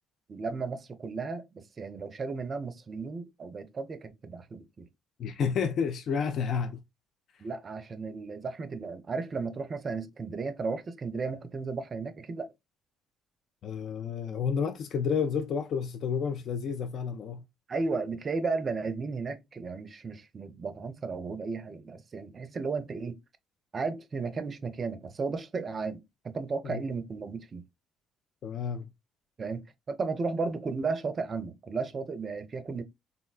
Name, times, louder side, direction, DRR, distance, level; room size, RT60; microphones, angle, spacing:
voice 1, 0.3-4.9 7.4-12.5 17.7-23.2 23.7-27.6 29.4-32.8, right 4 dB, 40° right, 0.4 m, -34 dB
voice 2, 5.2-6.8 13.6-17.4 26.6-26.8 28.4-28.9, left 6 dB, 60° left, 0.3 m, -30 dB
3.7 x 2.1 x 2.3 m
hypercardioid pair, 50°, 0 cm